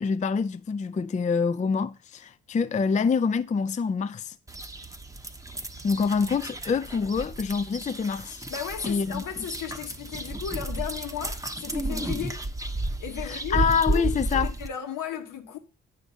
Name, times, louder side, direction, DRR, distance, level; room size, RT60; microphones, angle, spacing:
voice 1, 0.0-4.3 5.8-8.4 8.8-9.4 13.2-14.5, left 5 dB, 25° left, 0.4 m, -26 dB
sound 1, 4.5-14.7, right 2 dB, 10° right, 0.8 m, -32 dB
voice 2, 8.5-12.4 13.0-14.1 14.4-15.6, left 8 dB, 75° left, 1.2 m, -35 dB
9.0 x 5.0 x 4.1 m
hypercardioid pair, 45°, 32 cm